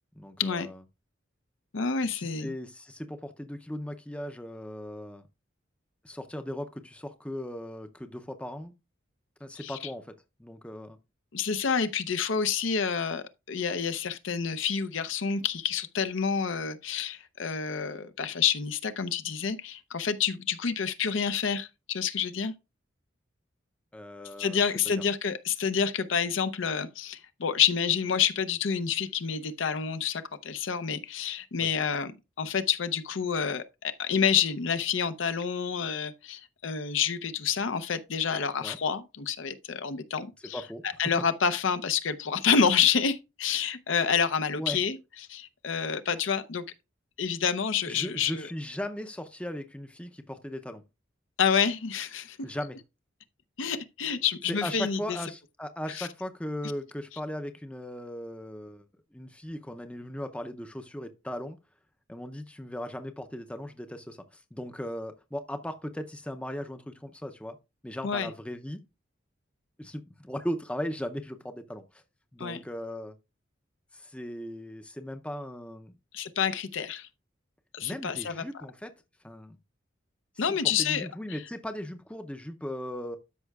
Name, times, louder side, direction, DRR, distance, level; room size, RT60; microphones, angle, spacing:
voice 1, 0.2-0.8 2.1-5.3 6.0-8.7 9.4-10.1 10.4-11.0 23.9-24.6 24.9-25.0 31.6-31.7 38.6-38.8 40.5-40.8 44.6-44.8 47.8-50.8 52.4-52.8 54.5-58.9 59.1-61.6 62.1-67.6 67.8-68.8 69.8-72.0 72.3-73.2 73.9-75.9 77.8-78.9 79.2-79.6 80.4-83.2, equal, 5° left, 0.5 m, -38 dB
voice 2, 1.7-2.5 9.6-9.8 11.3-22.5 24.4-32.1 32.4-45.0 45.3-46.6 47.2-48.5 51.4-52.4 53.6-55.2 55.9-56.1 68.0-68.3 72.4-72.6 76.1-77.1 77.7-78.4 80.4-81.1, left 7 dB, 80° left, 0.6 m, -28 dB
13.0 x 5.4 x 2.3 m
head